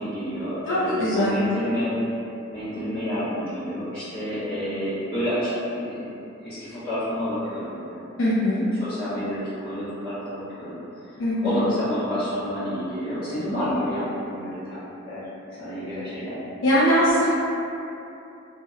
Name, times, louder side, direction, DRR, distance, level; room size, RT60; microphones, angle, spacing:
voice 1, 0.0-1.9 2.5-6.1 6.4-8.2 8.8-11.2 11.4-14.8 15.1-15.3 15.6-16.4, equal, 50° left, -15 dB, 1.3 m, -29 dB
voice 2, 0.6-1.4 8.2-8.6 11.2-11.6 16.6-17.3, equal, 75° left, -9 dB, 0.4 m, -21 dB
2.7 x 2.1 x 2.3 m, 2.8 s
head